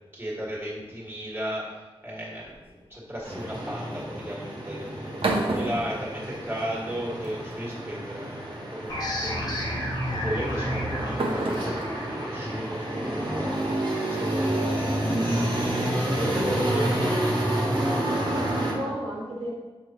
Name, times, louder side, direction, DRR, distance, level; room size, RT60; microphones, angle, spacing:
voice 1, 0.1-9.8 10.1-15.0 15.9-17.1, equal, 20° right, -5 dB, 1.8 m, -35 dB
sound 1, 2.4-2.9 4.8-6.7 7.1-7.7 8.8-9.1 10.3-13.6, right 2 dB, 70° right, 0.9 m, -32 dB
sound 2, 3.2-18.7, right 1 dB, 55° right, 1.6 m, -29 dB
sound 3, 8.9-14.2, equal, 45° left, 1.2 m, -33 dB
voice 2, 16.2-17.2 18.0-19.5, equal, 90° right, -5 dB, 1.8 m, -34 dB
6.8 x 4.8 x 2.9 m, 1.3 s
wide cardioid pair, 85°, 10 cm